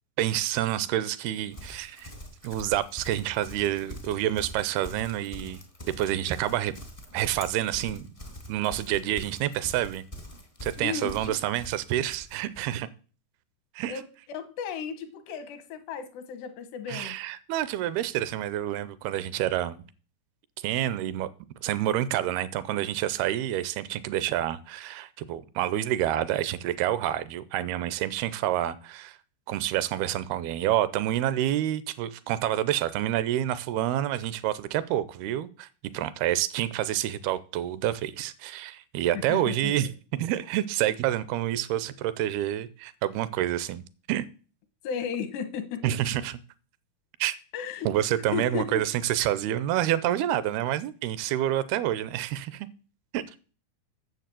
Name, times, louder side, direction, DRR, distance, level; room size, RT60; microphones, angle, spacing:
voice 1, 0.2-2.1 2.4-5.6 6.0-6.7 7.1-8.1 8.5-10.0 10.6-12.9 13.8-14.0 16.9-19.8 20.6-21.3 21.6-29.2 29.5-35.7 35.9-44.2 45.8-46.3 47.2-47.4 47.8-52.7 53.1-53.4, right 12 dB, 80° right, 2.5 m, -28 dB
Livestock farm animals working animals, 1.5-12.7, equal, 55° left, 0.3 m, -44 dB
voice 2, 10.8-11.3 13.9-17.2 39.1-39.7 44.8-45.8 47.5-47.9 48.3-48.8, left 7 dB, 85° left, 3.4 m, -34 dB
9.4 x 7.3 x 7.5 m
omnidirectional pair, 4.7 m